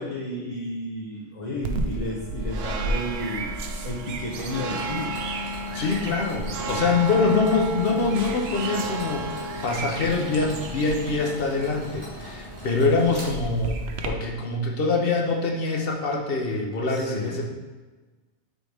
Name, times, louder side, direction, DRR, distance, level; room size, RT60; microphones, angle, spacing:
voice 1, 0.0-3.6 3.8-5.1 16.9-17.4, left 1 dB, 35° left, -4 dB, 0.6 m, -32 dB
sound 1, 1.6-14.1, right 2 dB, 70° right, 0.8 m, -32 dB
Mechanisms, 4.3-13.8, right 1 dB, 20° right, 1.5 m, -42 dB
voice 2, 5.7-17.4, left 3 dB, 55° left, 0 dB, 0.9 m, -24 dB
6.2 x 4.7 x 3.4 m, 1.3 s
omnidirectional pair, 1.2 m